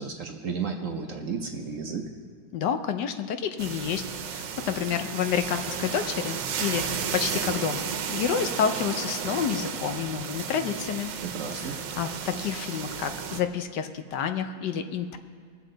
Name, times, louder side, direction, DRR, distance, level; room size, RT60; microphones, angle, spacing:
voice 1, 0.0-2.0 11.2-11.8, right 5 dB, 55° right, 3 dB, 1.0 m, -33 dB
voice 2, 2.5-4.0 4.3-11.1 11.5-15.2, left 8 dB, 75° left, 8 dB, 1.2 m, -29 dB
sound 1, 3.6-13.4, right 7 dB, 80° right, 1.4 m, -33 dB
21.5 x 7.4 x 3.9 m, 2.1 s
omnidirectional pair, 1.9 m